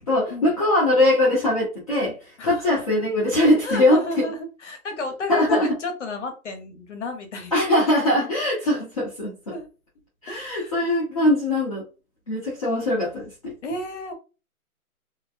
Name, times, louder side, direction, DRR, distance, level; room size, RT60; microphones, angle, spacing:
voice 1, 0.1-2.2 2.4-4.0 5.3-5.7 7.5-9.3 10.2-11.8 12.3-13.5, left 1 dB, 25° left, -7 dB, 0.7 m, -21 dB
voice 2, 3.6-7.5 9.5-9.7 10.3-11.4 13.6-14.1, left 2 dB, 50° left, 6 dB, 0.9 m, -32 dB
2.5 x 2.1 x 2.5 m, 0.32 s
hypercardioid pair, 160°, 44 cm